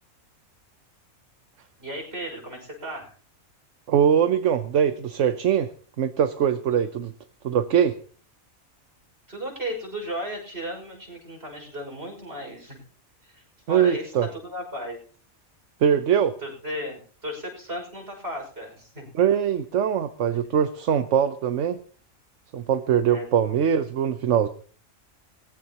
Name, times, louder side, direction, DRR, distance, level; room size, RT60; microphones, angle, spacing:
voice 1, 1.8-3.1 9.3-12.8 13.2-14.1 14.4-15.0 16.4-19.1 23.1-23.3, equal, 45° right, 1 dB, 6.1 m, -35 dB
voice 2, 3.9-5.7 6.0-7.1 7.4-8.0 13.7-14.3 15.8-16.4 19.1-21.8 22.5-24.5, right 8 dB, 60° right, 10 dB, 1.1 m, -22 dB
21.5 x 15.0 x 2.9 m, 0.43 s
omnidirectional pair, 1.5 m